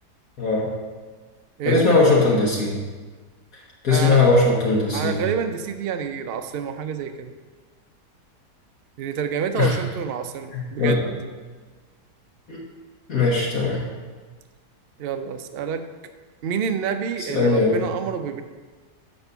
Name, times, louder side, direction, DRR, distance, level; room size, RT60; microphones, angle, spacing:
voice 1, 0.4-0.7 1.6-2.8 3.8-5.2 9.5-9.8 10.5-11.0 12.5-12.6 13.1-13.8 17.3-17.8, left 3 dB, 60° left, -4 dB, 1.8 m, -19 dB
voice 2, 3.9-4.2 4.9-7.3 9.0-11.0 15.0-15.8 16.4-18.4, right 7 dB, 90° right, 7 dB, 0.5 m, -28 dB
6.8 x 5.3 x 6.7 m, 1.4 s
omnidirectional pair, 1.7 m